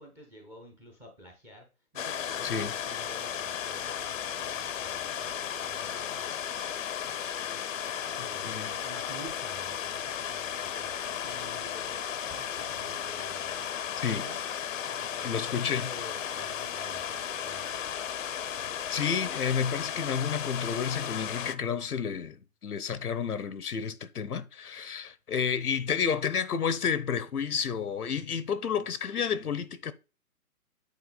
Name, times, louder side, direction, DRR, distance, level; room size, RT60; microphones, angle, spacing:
voice 1, 0.0-1.7 1.9-6.8 8.2-13.7 14.1-14.4 15.0-18.0, equal, 5° right, 0.8 m, -49 dB
sound 1, 2.0-21.6, left 9 dB, 60° left, 0.7 m, -35 dB
voice 2, 8.4-8.8 14.0-14.3 15.2-15.9 18.9-29.9, left 7 dB, 85° left, 1.0 m, -31 dB
8.6 x 4.3 x 4.0 m
hypercardioid pair, 150°, 44 cm